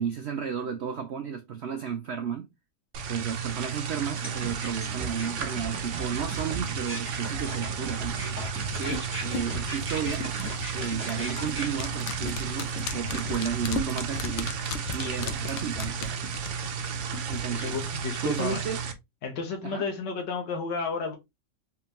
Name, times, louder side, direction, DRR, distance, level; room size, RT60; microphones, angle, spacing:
voice 1, 0.0-2.5 3.1-8.2 8.8-10.3 10.7-16.2 17.3-17.8 18.2-18.8 19.6-19.8, right 7 dB, 85° right, 0.5 m, -33 dB
sound 1, 2.9-18.9, right 6 dB, 60° right, 0.8 m, -33 dB
sound 2, 4.2-11.7, right 2 dB, 5° right, 1.6 m, -37 dB
sound 3, 8.0-17.4 17.7-17.8, left 5 dB, 70° left, 0.6 m, -36 dB
voice 2, 17.5-18.6 19.2-21.2, left 4 dB, 90° left, 1.5 m, -32 dB
3.6 x 3.5 x 2.9 m
omnidirectional pair, 1.8 m